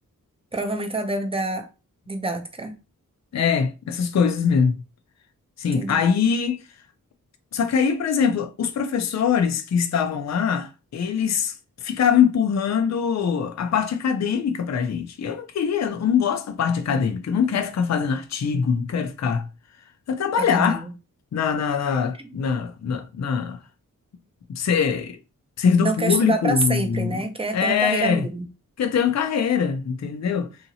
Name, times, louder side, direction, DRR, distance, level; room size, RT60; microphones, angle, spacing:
voice 1, 0.5-1.7 2.1-2.8 5.7-6.0 20.4-20.9 22.2-22.3 25.8-28.5, right 2 dB, 15° right, 0.5 m, -27 dB
voice 2, 3.3-4.8 5.6-6.6 7.5-11.5 11.8-19.5 20.1-20.8 21.3-23.6 24.5-25.2 25.6-27.2 27.5-28.3 28.8-30.5, left 7 dB, 55° left, 0.5 m, -23 dB
2.8 x 2.7 x 2.7 m
wide cardioid pair, 85°, 33 cm